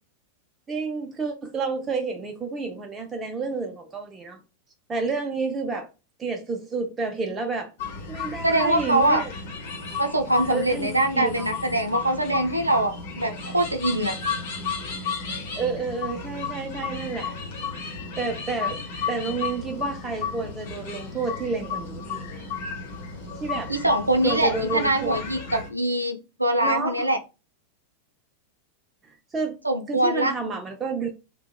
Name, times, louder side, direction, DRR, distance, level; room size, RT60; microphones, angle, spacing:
voice 1, 0.7-4.4 4.9-5.9 6.2-7.7 8.1-9.3 10.5-11.5 15.6-17.4 18.2-22.4 23.4-23.7 24.2-25.2 26.6-27.1 29.3-29.6 29.9-31.1, right 4 dB, 20° right, 0.4 m, -30 dB
sound 1, 7.8-25.7, left 5 dB, 50° left, 0.7 m, -33 dB
voice 2, 8.4-9.2 10.0-14.1 23.7-27.2 29.6-30.3, right 1 dB, 85° right, 0.4 m, -23 dB
2.7 x 2.1 x 2.3 m
figure-of-eight pair, 90°, 0 cm